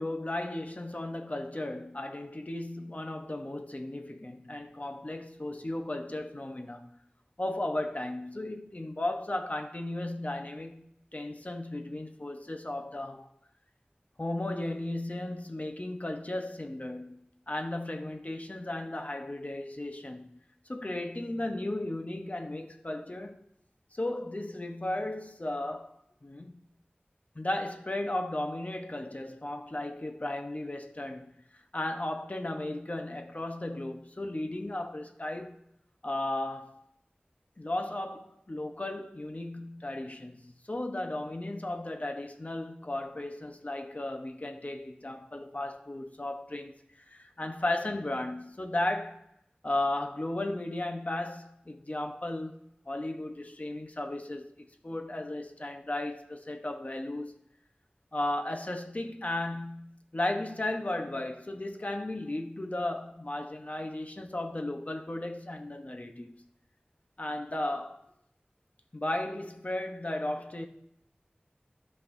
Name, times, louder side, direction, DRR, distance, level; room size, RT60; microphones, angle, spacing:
voice 1, 0.0-6.9 7.4-10.8 11.1-13.3 14.2-20.4 20.7-23.4 23.9-25.9 26.2-26.5 27.3-31.3 31.7-35.6 36.0-36.8 37.6-49.2 49.6-52.5 52.9-54.5 54.8-57.4 58.1-66.3 67.2-68.0 68.9-70.7, left 1 dB, 45° left, 1.0 m, -35 dB
15.0 x 5.4 x 2.7 m
wide cardioid pair, 50°, 3 cm